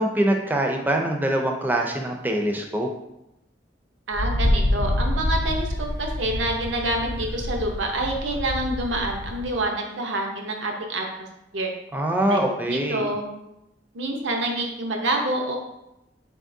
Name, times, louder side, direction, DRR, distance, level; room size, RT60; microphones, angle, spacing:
voice 1, 0.0-2.9 11.9-13.0, right 1 dB, 10° right, 2 dB, 0.4 m, -24 dB
Wind, 4.1-9.6, left 1 dB, 90° left, 0.5 m, -27 dB
voice 2, 4.1-5.7 6.0-11.1 11.5-11.7 12.3-13.3 13.9-15.6, right 1 dB, 85° right, 2 dB, 0.7 m, -27 dB
4.1 x 3.4 x 2.6 m, 0.88 s
head